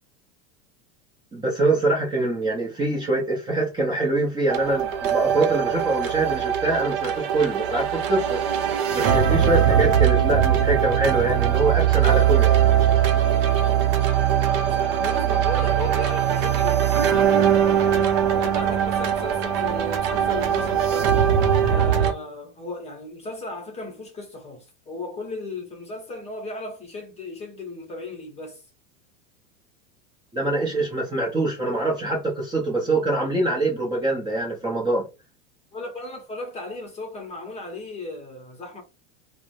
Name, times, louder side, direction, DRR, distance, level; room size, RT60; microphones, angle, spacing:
voice 1, 1.3-8.4 8.9-12.6 30.3-35.1, right 2 dB, 10° right, 0.6 m, -24 dB
sound 1, 4.5-22.1, right 9 dB, 50° right, 0.7 m, -21 dB
voice 2, 14.4-21.1 21.6-28.6 35.7-38.8, left 2 dB, 15° left, 0.8 m, -36 dB
3.1 x 2.1 x 2.5 m
supercardioid pair, 140°, 37 cm